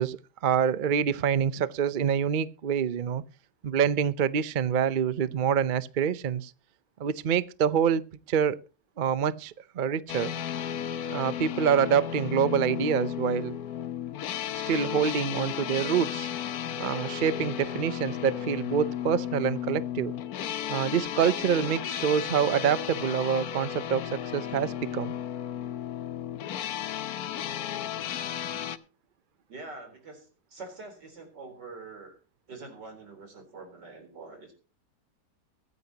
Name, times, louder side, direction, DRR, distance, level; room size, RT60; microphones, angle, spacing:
voice 1, 0.0-3.2 3.6-6.5 7.0-8.0 8.3-8.6 9.0-10.3 11.1-13.6 14.7-16.3 16.8-20.1 20.7-25.1, right 8 dB, 55° right, 0.5 m, -26 dB
sound 1, 10.1-28.8, left 10 dB, 65° left, 1.2 m, -34 dB
voice 2, 29.5-32.2 32.5-34.5, right 3 dB, 85° right, 4.5 m, -45 dB
23.0 x 9.5 x 2.9 m
omnidirectional pair, 1.8 m